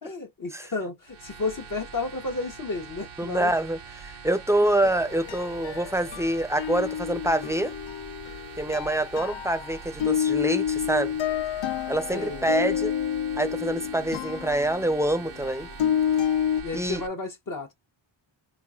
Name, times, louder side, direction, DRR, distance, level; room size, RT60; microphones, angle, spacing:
voice 1, 0.0-3.5 4.6-4.7 12.1-12.5 16.6-17.7, left 3 dB, 45° left, 0.9 m, -32 dB
sound 1, 1.0-17.1, right 5 dB, 85° right, 0.8 m, -44 dB
voice 2, 3.2-7.7 8.6-11.2 11.9-12.9 13.4-15.7 16.7-17.0, right 1 dB, 5° right, 0.5 m, -26 dB
sound 2, 4.7-6.3 6.6-16.6, left 9 dB, 70° left, 0.5 m, -29 dB
3.9 x 3.0 x 2.3 m
wide cardioid pair, 80°, 47 cm